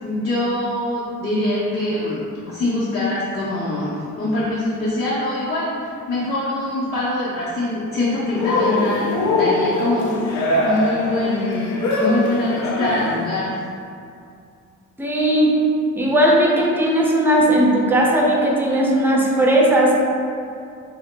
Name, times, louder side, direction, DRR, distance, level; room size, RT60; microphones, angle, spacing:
voice 1, 0.0-13.5, left 1 dB, 35° left, -9 dB, 0.6 m, -24 dB
Cheering, 8.4-13.3, left 2 dB, 75° left, 0.5 m, -22 dB
voice 2, 15.0-15.6 16.0-20.0, right 1 dB, 5° right, -3 dB, 0.4 m, -17 dB
2.8 x 2.0 x 3.2 m, 2.4 s
cardioid pair, 90°, 30 cm